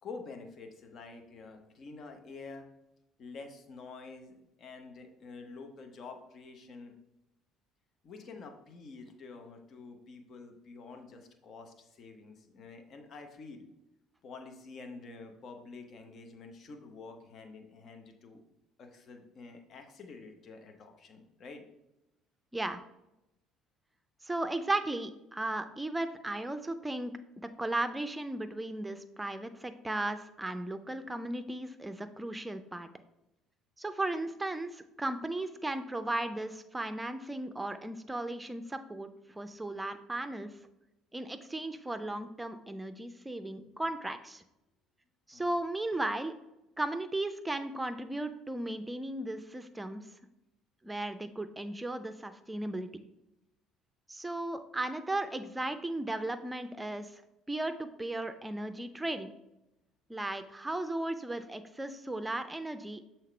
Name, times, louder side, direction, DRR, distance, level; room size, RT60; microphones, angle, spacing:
voice 1, 0.0-2.6 3.2-6.9 8.0-13.7 14.2-18.4 18.8-21.6 45.3-45.4, left 4 dB, 50° left, 5 dB, 0.9 m, -48 dB
voice 2, 24.2-27.1 27.6-32.9 33.8-39.1 39.4-40.5 41.1-44.4 45.3-46.4 46.8-50.0 50.8-52.9 54.1-57.2 57.5-59.3 60.1-63.0, right 2 dB, 10° right, 9 dB, 0.6 m, -36 dB
6.6 x 4.3 x 3.3 m, 0.90 s
hypercardioid pair, 55°, 0 cm